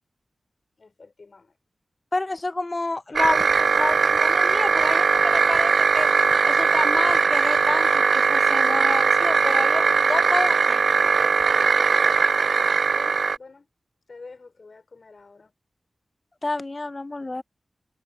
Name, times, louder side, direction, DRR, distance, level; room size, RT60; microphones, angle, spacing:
voice 1, 0.8-1.6 12.7-13.7 14.1-15.5, left 3 dB, 60° left, 5.1 m, -47 dB
voice 2, 2.1-6.1 6.4-10.8 16.4-17.4, left 2 dB, 35° left, 0.5 m, -29 dB
sound 1, 3.1-13.4, right 5 dB, 80° right, 0.3 m, -20 dB
cardioid pair, 45°, 0 cm